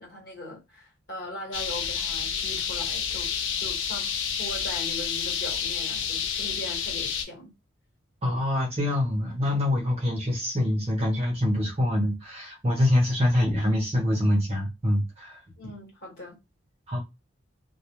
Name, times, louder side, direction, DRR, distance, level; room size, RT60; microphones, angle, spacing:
voice 1, 0.0-3.3 3.6-4.1 4.4-7.5 15.6-16.4, left 1 dB, 50° left, 1.3 m, -40 dB
sound 1, 1.5-7.2, left 7 dB, 70° left, 0.5 m, -29 dB
voice 2, 8.2-15.4 16.9-17.0, left 1 dB, 30° right, 0.7 m, -25 dB
2.3 x 2.2 x 2.9 m
head